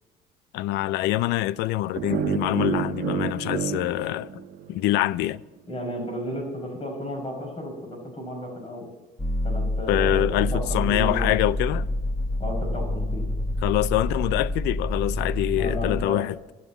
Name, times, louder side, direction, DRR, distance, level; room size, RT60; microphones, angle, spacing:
voice 1, 0.5-4.3 4.7-5.4 9.9-11.9 13.6-16.4, left 15 dB, 90° left, 0.4 m, -25 dB
sound 1, 1.9-5.0, right 8 dB, 70° right, 1.0 m, -29 dB
voice 2, 5.7-8.9 9.4-11.3 12.4-13.2 15.5-16.2, left 1 dB, 35° left, 5.5 m, -33 dB
sound 2, 9.2-16.0, left 1 dB, 10° left, 1.4 m, -27 dB
11.5 x 7.3 x 8.4 m
cardioid pair, 110°, 17 cm